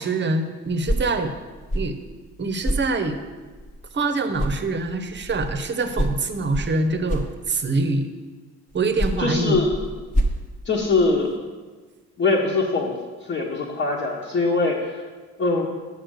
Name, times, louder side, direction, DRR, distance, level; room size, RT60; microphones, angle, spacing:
voice 1, 0.0-1.3 1.7-2.0 2.4-3.2 3.9-8.1 8.7-9.6, right 3 dB, 35° right, 7 dB, 0.8 m, -24 dB
sound 1, 0.7-4.1 4.3-7.9 8.7-11.4, equal, 25° left, 1.1 m, -29 dB
voice 2, 9.2-9.8 10.6-11.3 12.2-15.0 15.4-15.7, left 3 dB, 40° left, -4 dB, 1.2 m, -22 dB
6.6 x 5.5 x 6.4 m, 1.4 s
cardioid pair, 90°, 30 cm